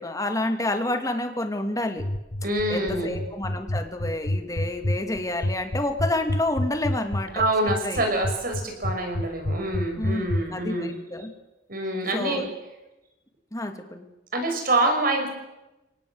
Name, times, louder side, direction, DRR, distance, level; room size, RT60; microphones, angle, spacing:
voice 1, 0.0-2.0 2.7-7.3 7.8-8.0 10.0-11.3 12.1-12.5 13.5-14.1, left 1 dB, 20° left, 6 dB, 2.5 m, -29 dB
sound 1, 2.0-10.4, left 1 dB, 50° left, 1.6 m, -27 dB
voice 2, 2.4-3.2 7.3-10.9 11.7-12.4 14.3-15.3, right 2 dB, 50° right, 4 dB, 6.1 m, -26 dB
29.0 x 18.5 x 8.0 m, 1.0 s
head